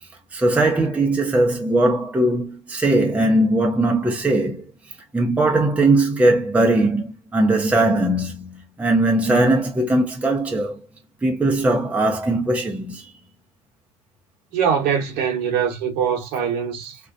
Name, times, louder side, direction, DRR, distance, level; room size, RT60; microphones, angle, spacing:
voice 1, 0.3-4.7 5.1-10.8 11.2-13.0, right 2 dB, 5° right, 0.6 m, -19 dB
voice 2, 14.5-17.0, right 7 dB, 55° right, 0.9 m, -22 dB
2.4 x 2.1 x 2.4 m
hypercardioid pair, 75°, 20 cm